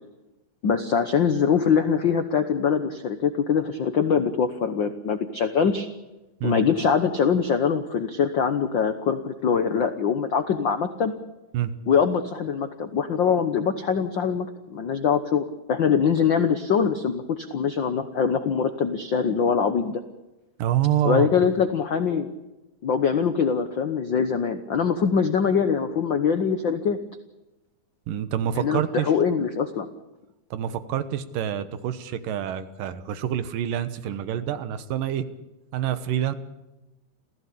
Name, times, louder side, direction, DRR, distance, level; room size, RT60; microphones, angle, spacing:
voice 1, 0.6-5.9 6.4-11.1 11.9-20.0 21.0-22.3 22.8-27.0 28.6-29.9, left 6 dB, 80° left, 9 dB, 1.0 m, -23 dB
voice 2, 20.6-21.3 28.1-29.1 30.5-35.3 35.7-36.3, right 10 dB, 85° right, 11 dB, 2.9 m, -27 dB
28.0 x 15.5 x 8.6 m, 1.0 s
omnidirectional pair, 3.8 m